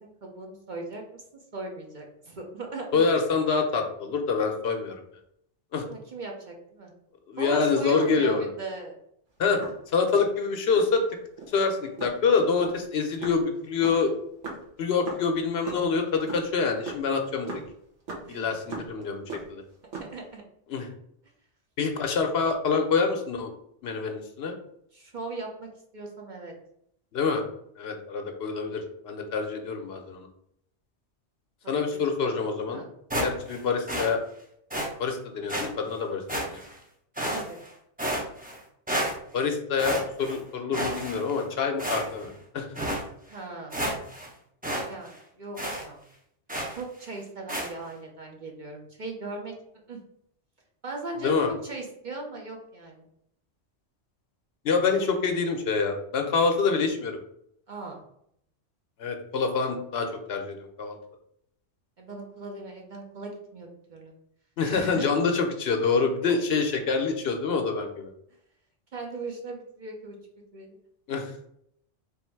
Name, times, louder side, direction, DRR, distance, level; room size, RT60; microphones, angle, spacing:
voice 1, 0.0-1.2 1.5-3.0 5.9-6.9 7.4-8.9 18.2-18.5 19.9-20.4 24.9-25.7 25.9-26.5 31.9-32.0 32.7-32.9 37.3-37.6 43.3-43.8 44.7-46.1 46.7-49.5 49.9-50.0 50.8-53.0 57.7-58.0 62.0-64.1 64.6-65.0 68.9-70.1 70.5-70.8, right 2 dB, 50° right, 0 dB, 0.7 m, -38 dB
voice 2, 2.9-5.0 5.7-5.8 7.3-8.5 9.4-9.6 9.9-11.0 11.5-14.1 14.8-17.6 18.3-19.2 19.5-19.6 20.7-20.9 21.8-23.5 23.8-24.5 27.1-27.4 27.8-30.3 31.7-32.8 33.2-34.2 35.0-36.6 39.3-42.7 51.2-51.5 54.6-57.2 59.0-61.0 64.6-68.1 71.1-71.3, left 5 dB, 65° left, 4 dB, 0.8 m, -26 dB
sound 1, 9.4-11.0 11.4-11.6 12.0-15.8 16.1-19.0 19.3-20.2, right 4 dB, 85° right, 1.4 m, -39 dB
sound 2, 33.1-33.6 33.9-34.1 34.7-34.9 35.5-35.7 36.3-36.8 37.2-37.7 38.0-38.6 38.9-39.4 39.8-40.4 40.7-41.4 41.8-42.3 42.8-43.0 43.4-43.5 43.7-44.3 44.6-44.9 45.1-45.2 45.6-45.8 46.5-46.8 47.5-47.7, right 1 dB, 10° right, 0.5 m, -30 dB
3.5 x 2.6 x 4.4 m, 0.73 s
omnidirectional pair, 1.2 m